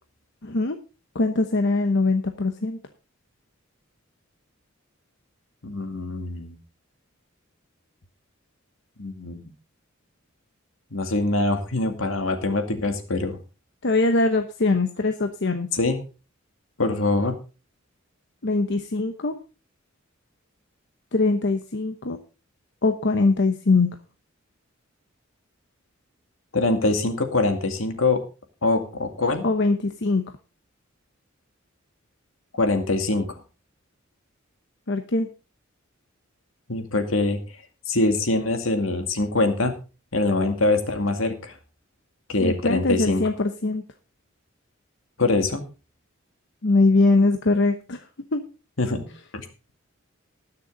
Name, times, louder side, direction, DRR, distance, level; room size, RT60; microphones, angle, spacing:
voice 1, 0.4-0.8 1.1-2.8 13.8-15.7 18.4-19.3 21.1-22.2 22.8-23.9 29.4-30.2 34.9-35.3 42.4-43.8 46.6-48.0 48.3-48.4, left 3 dB, 60° left, 6 dB, 1.0 m, -22 dB
voice 2, 5.6-6.6 9.0-9.5 10.9-13.4 15.7-16.0 16.8-17.3 26.5-28.2 28.6-29.4 32.6-33.3 36.7-37.4 37.9-39.7 40.1-41.5 42.3-43.2 45.2-45.6 48.8-49.1 49.3-49.7, left 2 dB, 75° left, 6 dB, 2.2 m, -23 dB
20.0 x 6.8 x 3.8 m, 0.33 s
head